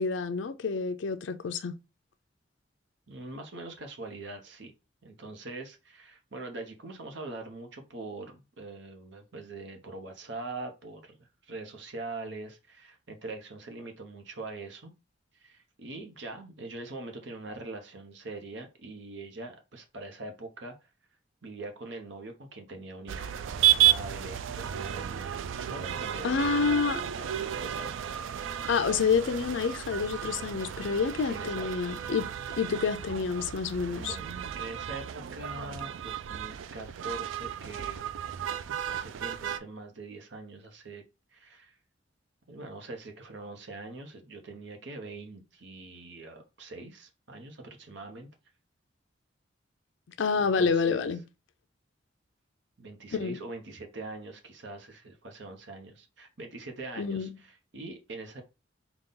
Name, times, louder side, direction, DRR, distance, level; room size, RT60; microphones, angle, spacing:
voice 1, 0.0-1.7 26.2-27.0 28.7-32.3 32.6-34.2 50.2-51.2 53.1-53.4 57.0-57.3, left 5 dB, 75° left, 0.5 m, -28 dB
voice 2, 3.1-4.7 5.0-14.9 15.3-20.9 21.4-23.3 23.7-25.4 25.6-26.8 27.1-28.2 31.2-32.0 32.6-32.7 34.0-38.1 38.6-41.0 41.3-41.8 42.5-48.3 50.4-51.0 52.8-58.4, right 2 dB, 65° right, 0.9 m, -43 dB
sound 1, 23.1-39.6, right 10 dB, 85° right, 0.3 m, -32 dB
4.0 x 2.3 x 3.7 m
head